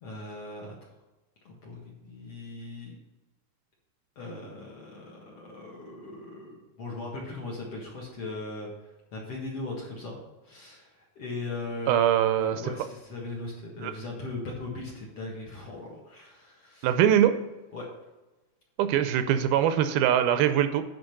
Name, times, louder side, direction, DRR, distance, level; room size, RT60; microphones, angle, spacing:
voice 1, 0.0-0.8 1.4-3.0 4.2-8.7 9.1-16.9 17.7-17.9, left 2 dB, 50° left, -3 dB, 2.0 m, -39 dB
voice 2, 11.9-12.6 13.8-13.9 16.8-17.4 18.8-20.8, right 10 dB, 80° right, 10 dB, 2.4 m, -22 dB
10.5 x 4.2 x 6.5 m, 1.1 s
omnidirectional pair, 4.4 m